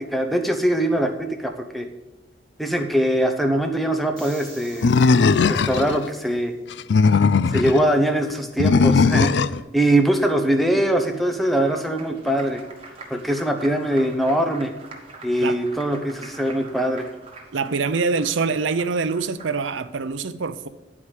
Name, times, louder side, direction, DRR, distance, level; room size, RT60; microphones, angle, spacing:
voice 1, 0.0-1.9 2.6-4.9 5.5-6.5 7.5-9.3 9.7-12.6 13.1-14.7 15.2-17.1, right 1 dB, ahead, 4 dB, 0.8 m, -22 dB
sound 1, 4.2-6.4, equal, 25° left, 3.3 m, -47 dB
Animal, 4.8-6.0 6.7-7.8 8.6-9.6, left 4 dB, 65° left, 0.3 m, -17 dB
Applause, 11.1-19.9, right 3 dB, 30° right, 1.4 m, -44 dB
voice 2, 17.5-20.7, right 4 dB, 80° right, 12 dB, 0.6 m, -24 dB
9.6 x 4.9 x 7.3 m, 1.1 s
head